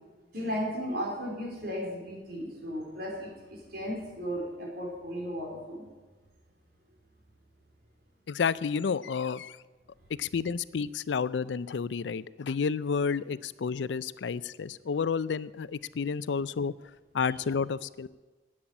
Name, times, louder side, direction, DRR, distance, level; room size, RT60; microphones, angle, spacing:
voice 1, 0.3-5.8 17.2-17.3, equal, 60° right, -1 dB, 4.1 m, -35 dB
voice 2, 8.3-9.6 10.2-16.7 17.1-18.1, left 5 dB, 90° left, 18 dB, 0.4 m, -30 dB
10.0 x 8.7 x 9.9 m, 1.3 s
head